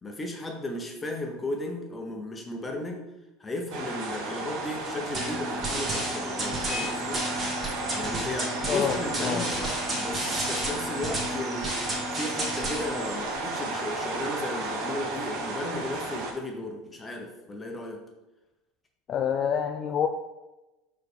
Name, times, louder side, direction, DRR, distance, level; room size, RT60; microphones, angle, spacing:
voice 1, 0.0-3.1 3.4-7.2 7.9-11.7 12.1-18.0, left 1 dB, 20° left, 2 dB, 0.9 m, -35 dB
sound 1, 3.7-16.3, right 2 dB, 55° right, 0.8 m, -34 dB
sound 2, 5.1-13.1, right 1 dB, 30° right, 1.3 m, -32 dB
voice 2, 8.7-9.5 19.1-20.1, left 8 dB, 40° left, 5 dB, 0.3 m, -27 dB
4.6 x 3.2 x 3.5 m, 1.0 s
figure-of-eight pair, 70°, 0 cm